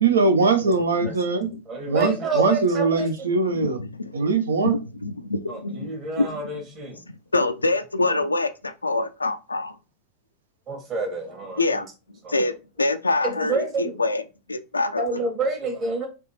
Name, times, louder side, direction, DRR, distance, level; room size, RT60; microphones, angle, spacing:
voice 1, 0.0-1.5 1.9-3.8 4.1-4.8, right 4 dB, 70° right, 0.6 m, -21 dB
voice 2, 1.7-3.3 5.5-7.0 8.1-8.2 10.7-11.8 12.2-12.4 13.2-13.9 15.0-16.1, right 3 dB, 30° right, 1.5 m, -28 dB
voice 3, 3.8-4.1 4.6-6.4 7.3-9.8 11.6-11.9 12.3-12.5 12.8-14.2 14.5-15.2, left 2 dB, 80° left, 0.3 m, -25 dB
3.4 x 3.0 x 3.0 m
figure-of-eight pair, 90°, 0 cm